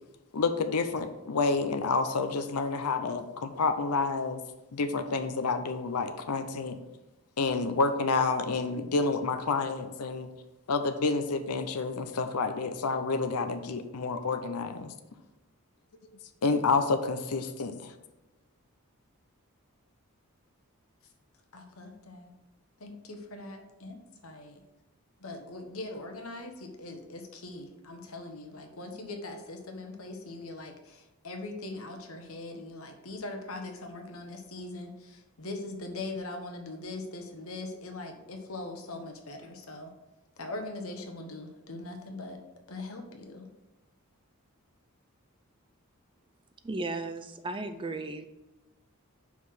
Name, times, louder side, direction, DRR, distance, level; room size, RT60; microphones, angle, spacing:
voice 1, 0.3-4.4 4.7-6.8 7.4-10.3 10.7-14.9 16.4-17.9, left 4 dB, 85° left, 8 dB, 0.6 m, -29 dB
voice 2, 21.5-22.3 22.8-24.0 24.2-24.6 25.2-39.9 40.4-42.4 42.7-43.5, left 2 dB, 70° left, 4 dB, 1.1 m, -41 dB
voice 3, 46.6-48.2, right 2 dB, 20° right, 9 dB, 0.4 m, -35 dB
5.4 x 4.8 x 6.3 m, 1.0 s
head